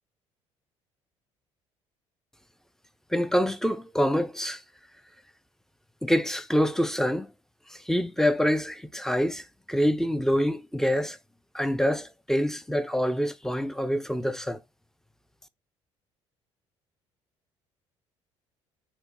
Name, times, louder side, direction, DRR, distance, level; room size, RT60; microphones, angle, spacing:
voice 1, 3.1-4.6 6.0-7.3 7.7-11.2 11.5-14.6, equal, 5° left, 0.3 m, -26 dB
4.1 x 2.5 x 2.9 m
figure-of-eight pair, 55°, 16 cm